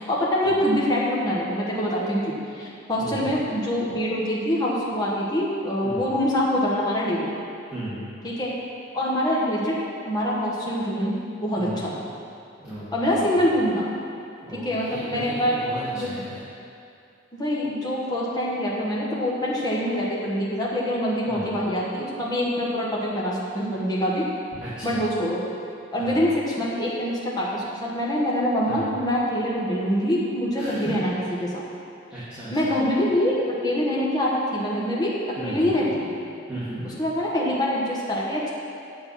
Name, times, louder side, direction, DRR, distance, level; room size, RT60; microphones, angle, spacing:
voice 1, 0.0-7.3 8.2-8.5 8.9-9.8 10.1-11.1 11.4-12.0 12.9-13.9 14.6-15.6 15.9-16.1 17.4-24.3 24.8-25.4 25.9-31.1 31.4-31.6 32.5-33.3 33.6-36.1 36.8-38.5, equal, 20° left, -6 dB, 1.4 m, -25 dB
voice 2, 13.1-13.4 14.5-16.3 21.3-21.4 24.6-25.0 26.0-26.2 28.7-28.8 30.6-30.9 32.1-32.7 35.4-35.8 36.5-36.8, right 1 dB, 5° right, -15 dB, 2.2 m, -35 dB
8.5 x 7.7 x 5.7 m, 2.5 s
head